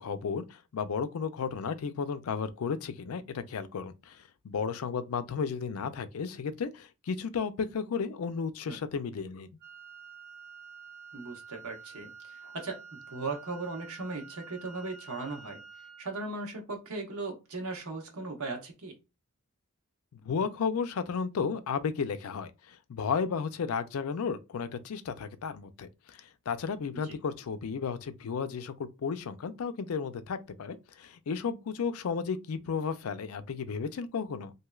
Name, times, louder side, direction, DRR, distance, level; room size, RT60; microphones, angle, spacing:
voice 1, 0.0-4.2 4.4-9.5 20.1-26.2 26.5-28.7 29.0-34.5, left 6 dB, 80° left, 0.4 m, -33 dB
Wind instrument woodwind instrument, 9.6-16.3, right 5 dB, 45° right, 0.8 m, -49 dB
voice 2, 11.1-15.6 16.0-19.0 26.9-27.2, right 3 dB, 85° right, 1.0 m, -38 dB
3.1 x 2.7 x 2.3 m
head